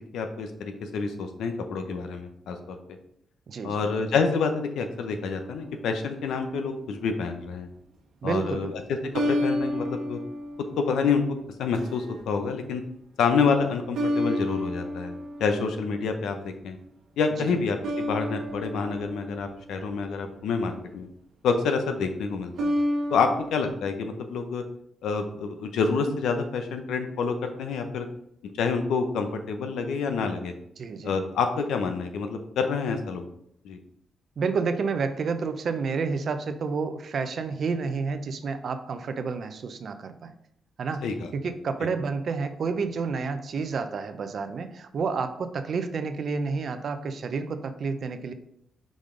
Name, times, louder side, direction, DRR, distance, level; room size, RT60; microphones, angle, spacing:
voice 1, 0.1-2.8 3.6-7.7 8.2-8.8 9.2-10.2 10.8-11.2 11.6-12.8 13.2-16.8 17.2-21.1 21.4-22.7 23.1-24.6 25.0-28.1 28.4-30.5 31.0-33.2 33.6-33.8 41.0-41.3, left 5 dB, 80° left, 6 dB, 0.7 m, -28 dB
sound 1, 5.3-6.2 9.1-11.2 11.7-12.2 13.9-15.9 17.8-20.3 22.5-23.7, left 1 dB, 80° right, 1.3 m, -31 dB
voice 2, 8.2-8.7 17.4-17.6 30.8-31.2 34.4-40.3 40.8-41.0 41.3-48.3, right 5 dB, 60° right, 9 dB, 0.6 m, -30 dB
5.2 x 5.0 x 3.8 m, 0.73 s
cardioid pair, 65°, 0 cm